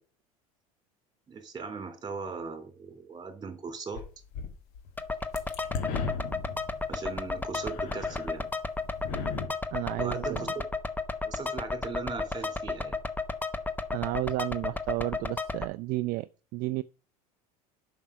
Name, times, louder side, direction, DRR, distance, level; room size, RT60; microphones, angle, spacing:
voice 1, 1.3-4.0 6.9-8.5 9.9-10.5 11.2-13.0, right 5 dB, 25° right, 3.0 m, -38 dB
sound 1, 3.9-8.5 8.8-9.5, left 5 dB, 60° left, 1.6 m, -37 dB
sound 2, 5.0-15.6, left 3 dB, 10° left, 0.9 m, -33 dB
voice 2, 9.7-10.5 13.9-16.8, right 19 dB, 55° right, 0.4 m, -32 dB
7.3 x 5.9 x 6.1 m
hypercardioid pair, 85°, 18 cm